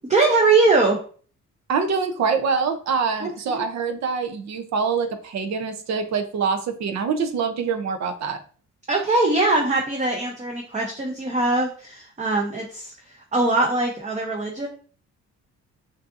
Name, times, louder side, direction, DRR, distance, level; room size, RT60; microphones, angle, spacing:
voice 1, 0.1-1.0 3.2-3.6 8.9-14.7, right 3 dB, 25° right, 0 dB, 0.7 m, -22 dB
voice 2, 1.7-8.4, right 5 dB, 65° right, 7 dB, 0.7 m, -25 dB
5.1 x 2.7 x 2.6 m, 0.43 s
cardioid pair, 90°, 30 cm